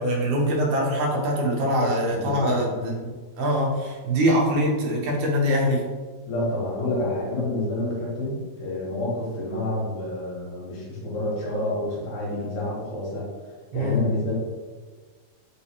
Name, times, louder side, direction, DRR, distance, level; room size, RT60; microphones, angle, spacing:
voice 1, 0.0-5.8 13.7-14.0, equal, 70° right, -3 dB, 2.1 m, -23 dB
voice 2, 1.8-2.9 6.3-13.3 13.7-14.3, left 1 dB, 70° left, -5 dB, 2.8 m, -28 dB
5.8 x 3.0 x 2.8 m, 1.4 s
omnidirectional pair, 4.3 m